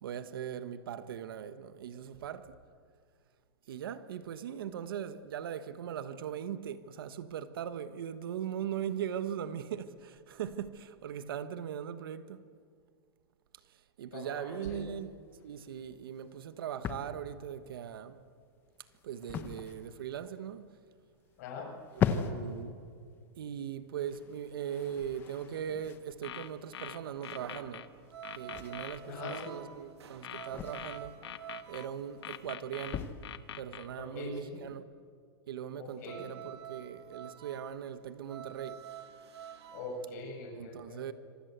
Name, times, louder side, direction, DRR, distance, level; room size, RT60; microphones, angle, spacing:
voice 1, 0.0-2.5 3.7-12.4 14.0-15.1 15.4-18.2 19.0-20.7 21.9-22.8 23.4-27.9 28.4-31.2 31.7-33.1 33.5-34.9 35.5-38.8 40.5-41.1, right 9 dB, 60° right, 1.4 m, -40 dB
voice 2, 14.1-14.8 21.4-21.7 29.0-29.6 34.0-34.6 35.8-36.3 39.7-41.1, left 3 dB, 40° left, 7.6 m, -42 dB
sound 1, 15.0-34.7, left 7 dB, 15° left, 1.1 m, -41 dB
sound 2, 24.0-32.5 35.9-40.0, right 9 dB, 85° right, 3.1 m, -49 dB
sound 3, 26.1-27.9 28.2-29.5 30.2-31.9 32.2-33.9, left 10 dB, 85° left, 1.4 m, -44 dB
26.0 x 24.0 x 8.1 m
supercardioid pair, 175°, 13 cm